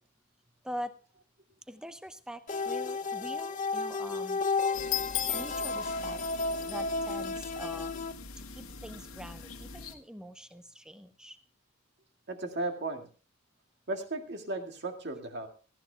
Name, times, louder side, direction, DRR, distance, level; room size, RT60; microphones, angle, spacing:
voice 1, 0.6-1.0 1.7-4.4 5.3-6.2 6.7-7.9 8.4-11.4, equal, 5° right, 10 dB, 0.8 m, -43 dB
sound 1, 2.5-8.1, left 3 dB, 35° left, 0.6 m, -33 dB
sound 2, 4.7-9.9, left 9 dB, 80° left, 1.8 m, -39 dB
voice 2, 12.3-13.1 13.9-15.5, right 2 dB, 50° right, 5 dB, 1.9 m, -35 dB
18.5 x 15.5 x 2.3 m, 0.37 s
head